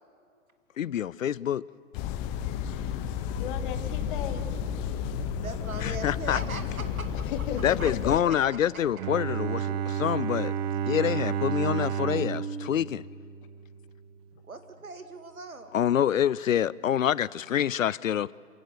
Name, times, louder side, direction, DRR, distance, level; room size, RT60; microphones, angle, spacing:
voice 1, 0.8-1.6 5.8-6.4 7.6-10.5 10.9-13.0 15.7-18.3, left 10 dB, 70° left, 0.5 m, -26 dB
sound 1, 1.9-8.2, left 8 dB, 15° left, 0.5 m, -32 dB
voice 2, 3.4-4.6 5.2-5.4 6.7-6.8 7.3-8.3 8.6-8.7, left 7 dB, 40° left, 2.0 m, -36 dB
voice 3, 5.3-7.1 7.8-7.9 8.5-8.6 14.4-15.8, right 3 dB, 80° right, 2.0 m, -40 dB
Bowed string instrument, 9.0-13.9, right 8 dB, 30° right, 0.9 m, -31 dB
27.5 x 17.0 x 6.7 m
figure-of-eight pair, 115°, 41 cm